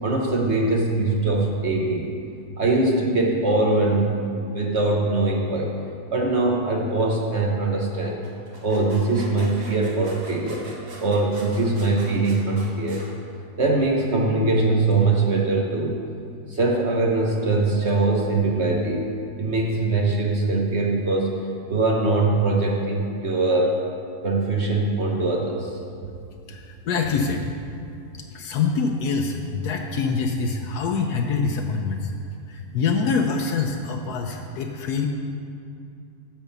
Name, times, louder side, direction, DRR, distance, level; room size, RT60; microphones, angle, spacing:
voice 1, 0.0-2.1 2.6-5.7 6.1-8.2 8.6-10.6 11.0-13.0 13.6-16.0 16.5-19.1 19.4-21.3 21.7-23.8 24.2-25.8, right 2 dB, 50° right, 0 dB, 1.0 m, -22 dB
sound 1, 8.2-13.1, right 2 dB, 75° right, 2.0 m, -43 dB
voice 2, 26.5-27.5 28.1-32.1 32.5-35.1, left 5 dB, 75° left, 2 dB, 1.2 m, -25 dB
9.0 x 5.6 x 6.9 m, 2.6 s
omnidirectional pair, 1.7 m